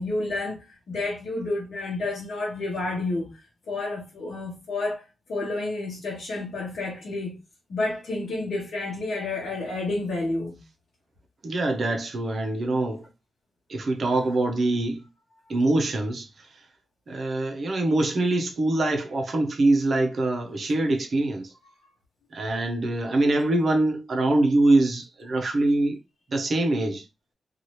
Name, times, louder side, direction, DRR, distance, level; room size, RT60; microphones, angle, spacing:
voice 1, 0.0-3.4 3.7-7.4 7.7-10.6, left 2 dB, 60° left, 1.0 m, -30 dB
voice 2, 11.4-13.1 13.7-15.1 15.5-16.5 17.1-21.5 22.3-26.0 26.3-27.0, right 2 dB, 40° right, 0.6 m, -24 dB
2.8 x 2.4 x 3.0 m
wide cardioid pair, 175°, 0 cm